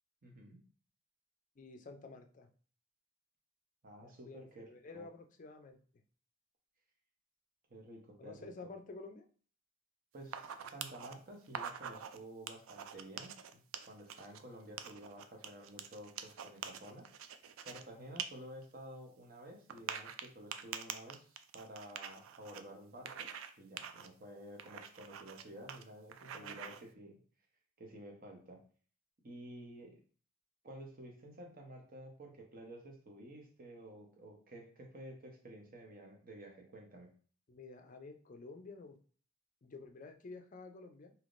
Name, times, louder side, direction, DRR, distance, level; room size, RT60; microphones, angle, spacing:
voice 1, 0.2-0.6 3.8-4.6 4.9-5.0 7.7-8.5 10.1-17.0 17.6-23.3 23.6-27.2 27.8-28.6 29.2-30.0 30.6-37.1, right 1 dB, 45° right, 1 dB, 0.8 m, -52 dB
voice 2, 1.6-2.5 4.0-5.8 8.2-9.3 26.2-26.8 37.5-39.0 39.6-41.1, left 3 dB, 40° left, 5 dB, 0.4 m, -51 dB
sound 1, 10.2-11.1 11.5-12.2 12.5-14.4 14.8-17.8 18.2-18.3 18.6-18.7 19.7-22.6 23.1-23.5 23.8-24.1 24.6-25.4 25.7-25.8 26.1-26.8, right 8 dB, 75° right, 0.3 m, -45 dB
3.4 x 2.8 x 2.5 m, 0.43 s
head